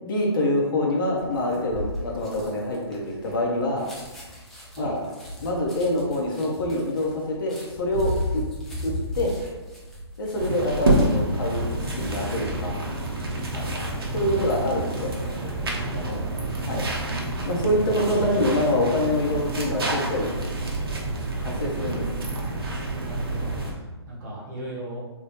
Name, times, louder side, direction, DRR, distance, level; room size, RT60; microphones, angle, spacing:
voice 1, 0.0-3.9 4.8-5.0 5.4-8.4 8.8-9.3 10.2-12.7 14.1-15.1 16.7-16.8 17.5-20.3 21.3-22.0, left 1 dB, 50° left, -2 dB, 0.8 m, -25 dB
sound 1, 1.2-11.3 11.7-12.0, left 1 dB, ahead, 0.4 m, -35 dB
sound 2, 10.4-23.7, right 1 dB, 55° right, 0.7 m, -28 dB
voice 2, 15.8-16.3 22.9-25.0, right 1 dB, 35° right, -4 dB, 1.0 m, -37 dB
3.5 x 2.3 x 2.9 m, 1.2 s
figure-of-eight pair, 130°, 14 cm